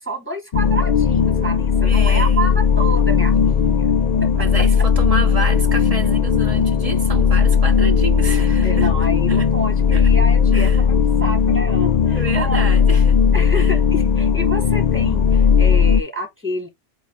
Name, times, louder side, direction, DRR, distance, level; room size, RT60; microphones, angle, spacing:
voice 1, 0.0-3.9 4.2-4.3 8.3-8.4 8.6-12.8 13.3-16.7, right 1 dB, 10° right, 3.2 m, -29 dB
sound 1, 0.5-16.0, left 6 dB, 50° left, 0.5 m, -16 dB
voice 2, 1.8-2.5 4.3-8.9 9.3-9.5 9.9-10.1 10.5-10.8 12.0-13.2 13.5-13.7, right 3 dB, 30° right, 1.7 m, -28 dB
8.3 x 3.2 x 4.5 m
omnidirectional pair, 1.2 m